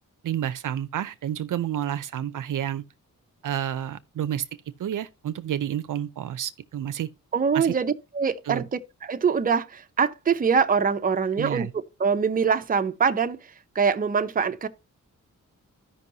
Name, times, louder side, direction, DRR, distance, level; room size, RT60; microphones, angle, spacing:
voice 1, 0.2-2.8 3.4-4.5 4.8-7.1 7.5-7.7 8.5-8.7 11.4-11.7, right 10 dB, 70° right, 0.6 m, -29 dB
voice 2, 7.3-14.7, right 6 dB, 25° right, 0.6 m, -24 dB
13.5 x 5.4 x 2.7 m
wide cardioid pair, 110°, 32 cm